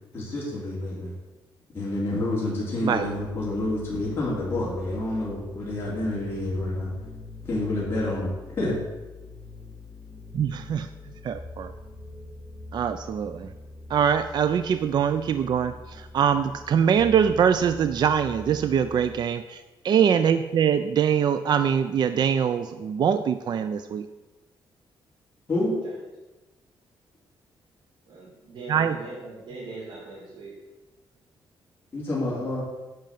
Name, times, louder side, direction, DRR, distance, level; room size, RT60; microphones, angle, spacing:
voice 1, 0.1-1.1 1.7-6.9 7.4-8.8 25.5-25.7 31.9-32.6, left 1 dB, 25° left, -7 dB, 3.6 m, -28 dB
sound 1, 2.9-19.2, left 3 dB, ahead, 4.0 m, -43 dB
voice 2, 10.3-10.9 11.2-11.7 12.7-13.5 13.9-24.1 28.7-29.0, right 8 dB, 50° right, 10 dB, 0.5 m, -23 dB
voice 3, 28.1-30.5, right 3 dB, 70° right, -9 dB, 4.1 m, -40 dB
11.0 x 5.2 x 7.4 m, 1.1 s
cardioid pair, 145°, 9 cm